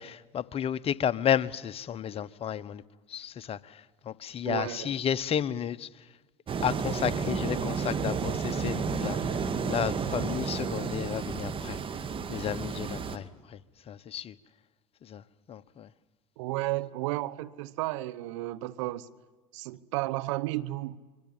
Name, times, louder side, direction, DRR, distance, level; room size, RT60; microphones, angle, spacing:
voice 1, 0.0-2.8 3.1-5.9 6.6-11.8 12.3-13.6 13.9-14.3 15.0-15.2 15.5-15.9, left 9 dB, 40° left, 1.0 m, -32 dB
voice 2, 4.4-4.9 16.4-19.1 19.5-21.0, right 17 dB, 75° right, 1.1 m, -33 dB
sound 1, 6.5-13.2, right 5 dB, 35° right, 1.9 m, -32 dB
24.5 x 23.0 x 8.9 m
hypercardioid pair, 85°, 16 cm